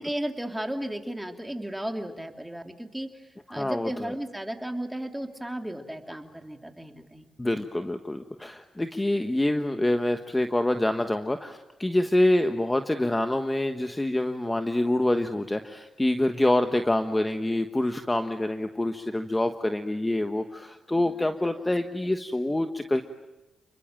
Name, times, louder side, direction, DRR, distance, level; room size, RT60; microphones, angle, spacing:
voice 1, 0.0-3.2 3.5-7.2 21.2-21.3 21.6-21.7, right 1 dB, 5° right, 4 dB, 3.0 m, -34 dB
voice 2, 3.5-4.1 7.4-23.0, left 1 dB, 15° left, 7 dB, 1.3 m, -26 dB
29.5 x 22.0 x 9.0 m, 1.0 s
cardioid pair, 80°, 0 cm